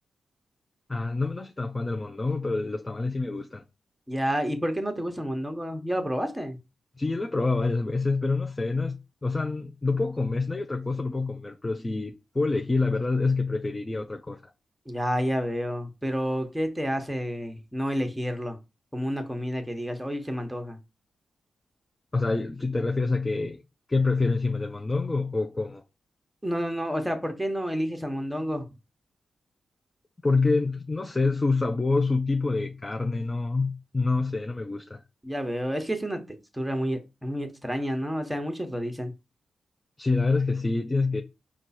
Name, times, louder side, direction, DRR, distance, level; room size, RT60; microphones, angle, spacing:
voice 1, 0.9-3.6 7.0-14.4 22.1-23.6 23.9-25.8 30.2-35.0 40.0-41.2, left 3 dB, 25° left, 0.5 m, -27 dB
voice 2, 4.1-6.6 14.9-18.6 18.9-20.8 26.4-28.7 35.2-36.2 36.5-39.1, equal, 5° right, 1.1 m, -29 dB
4.6 x 2.4 x 4.2 m
cardioid pair, 60°, 0 cm